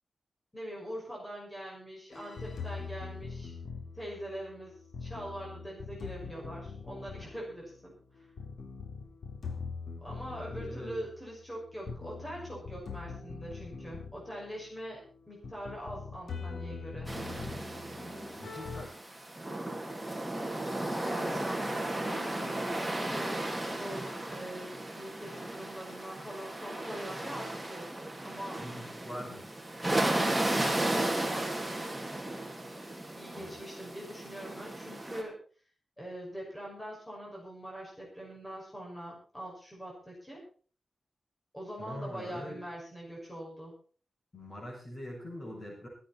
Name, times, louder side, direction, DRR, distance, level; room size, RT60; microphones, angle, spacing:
voice 1, 0.5-3.5 3.9-4.7 5.0-7.9 10.0-15.0 15.3-17.1 21.0-23.4 23.7-27.9 28.2-28.6 31.0-31.8 33.0-35.3 36.0-40.4 41.5-43.7, equal, 10° left, -3 dB, 6.0 m, -43 dB
sound 1, 2.1-18.8, left 5 dB, 80° left, 3.1 m, -43 dB
voice 2, 10.5-11.0 18.4-19.0 28.6-29.5 33.3-33.5 41.8-42.6 44.3-45.9, equal, 35° left, -1 dB, 6.7 m, -43 dB
sound 2, 17.1-35.2, right 1 dB, 10° right, 3.0 m, -35 dB
23.0 x 8.7 x 4.3 m, 0.40 s
wide cardioid pair, 135°, 0 cm